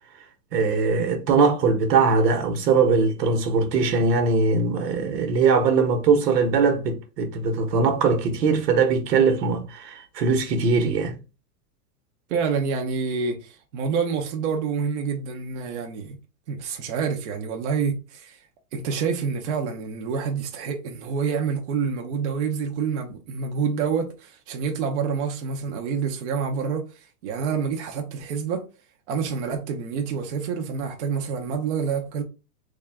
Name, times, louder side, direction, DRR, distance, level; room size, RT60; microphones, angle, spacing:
voice 1, 0.5-11.1, right 4 dB, 85° right, 1.2 m, -21 dB
voice 2, 12.3-16.2 16.5-18.4 18.7-28.7 29.1-32.2, right 6 dB, 45° right, 0.7 m, -27 dB
3.5 x 2.3 x 3.4 m
supercardioid pair, 170°, 48 cm